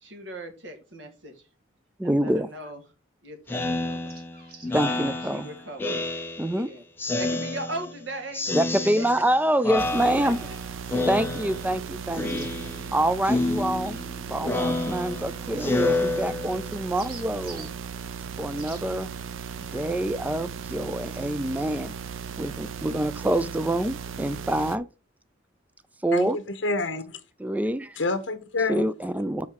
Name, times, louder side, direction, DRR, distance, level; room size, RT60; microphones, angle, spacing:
voice 1, 0.0-1.3 2.0-2.8 3.2-4.2 5.3-6.8 7.2-8.4 9.0-9.1 10.0-10.6, right 1 dB, 65° right, 2.0 m, -38 dB
voice 2, 2.0-2.5 4.7-5.5 6.4-6.7 8.5-10.4 11.1-12.5 12.9-14.0 14.3-17.7 18.4-19.1 19.7-21.9 22.4-24.9 26.0-26.4 27.4-28.0 28.7-29.5, right 1 dB, 10° right, 0.3 m, -26 dB
Speech synthesizer, 3.5-6.6 7.0-8.0 8.3-9.4 9.6-10.6 10.9-11.8 12.1-12.9 13.2-16.8, left 2 dB, 10° left, 0.8 m, -29 dB
sound 1, 3.9-4.8 7.9-8.0 12.3-12.5 13.8-14.1 15.9-16.0 16.7-17.7 18.6-18.8, right 5 dB, 50° right, 2.0 m, -46 dB
sound 2, 9.8-24.8, right 6 dB, 85° right, 0.5 m, -37 dB
voice 3, 26.1-27.2 28.0-28.9, left 3 dB, 65° left, 1.0 m, -28 dB
7.4 x 4.7 x 4.7 m
head